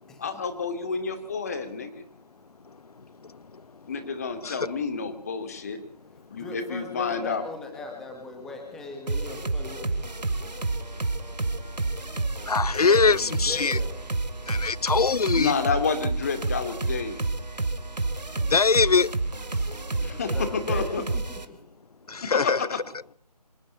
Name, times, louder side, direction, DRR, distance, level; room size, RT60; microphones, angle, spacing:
voice 1, 0.2-2.0 3.9-5.8 6.3-7.4 15.3-17.2 20.0-21.0 22.2-22.8, left 5 dB, 25° left, 2.4 m, -29 dB
voice 2, 6.3-10.0 12.8-14.0 20.1-21.6, left 3 dB, ahead, 1.6 m, -39 dB
sound 1, 9.1-21.4, right 3 dB, 90° right, 2.9 m, -30 dB
voice 3, 12.5-13.8 14.5-15.5 18.5-19.1 22.3-22.6, left 4 dB, 65° left, 0.8 m, -21 dB
26.5 x 11.5 x 9.1 m
figure-of-eight pair, 170°, 21 cm